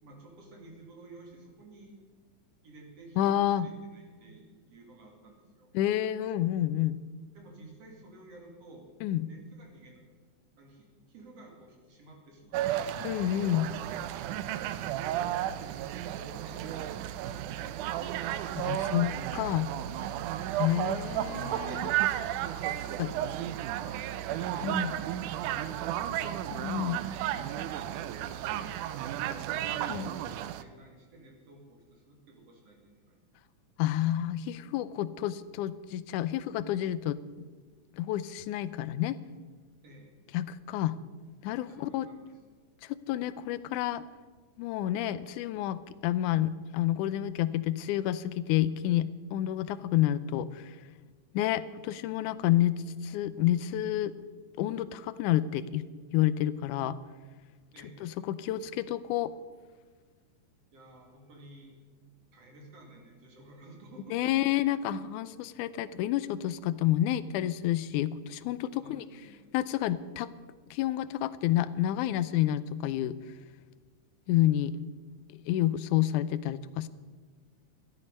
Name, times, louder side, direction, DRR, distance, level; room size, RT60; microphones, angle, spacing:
voice 1, 0.0-1.9 2.6-5.7 7.3-8.9 9.2-10.0 10.6-13.0 15.1-18.7 22.7-26.4 27.2-33.2 39.8-40.2 41.7-42.3 57.7-58.3 60.7-61.8 62.3-64.2 68.7-69.4, right 2 dB, 55° right, 1 dB, 3.3 m, -53 dB
voice 2, 3.2-3.7 5.7-7.0 9.0-9.3 13.0-13.7 18.6-19.7 20.5-21.9 23.0-23.1 24.6-24.9 26.5-27.0 29.9-30.1 33.8-37.2 38.0-39.2 40.3-41.0 41.4-42.1 42.8-44.0 44.6-50.8 51.3-54.1 54.6-55.8 56.1-57.0 58.0-59.3 64.1-69.0 69.5-70.3 70.7-73.2 74.3-74.8 75.3-76.9, left 13 dB, 85° left, 15 dB, 2.0 m, -29 dB
sound 1, 12.5-30.6, right 12 dB, 90° right, 2.1 m, -33 dB
13.0 x 12.0 x 5.4 m, 1.5 s
omnidirectional pair, 3.5 m